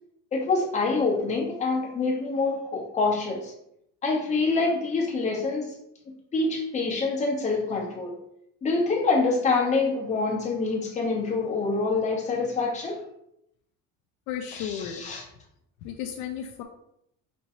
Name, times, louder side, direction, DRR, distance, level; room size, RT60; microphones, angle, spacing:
voice 1, 0.3-3.5 4.0-5.7 6.3-8.2 8.6-13.0 14.5-15.2, left 3 dB, 20° left, -3 dB, 1.0 m, -26 dB
voice 2, 14.3-15.1 15.8-16.6, left 9 dB, 65° left, 4 dB, 0.5 m, -34 dB
5.2 x 3.0 x 2.8 m, 0.76 s
cardioid pair, 170°, 32 cm